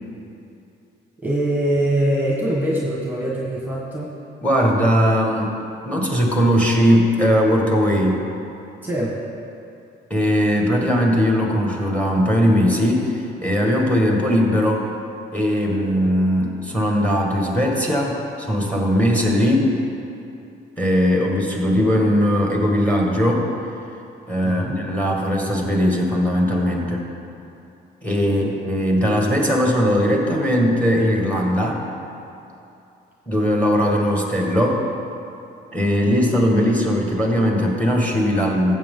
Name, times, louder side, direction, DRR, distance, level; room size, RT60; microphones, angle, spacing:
voice 1, 1.2-4.1 8.8-9.2 24.4-24.8 28.2-28.5, right 1 dB, 10° right, -3 dB, 1.4 m, -23 dB
voice 2, 4.4-5.6 5.8-8.3 10.1-14.8 15.3-19.7 20.8-23.5 24.3-27.0 28.0-31.8 33.3-34.9 35.7-38.7, equal, 5° left, 0 dB, 1.7 m, -19 dB
14.0 x 7.5 x 3.8 m, 2.7 s
cardioid pair, 90°, 20 cm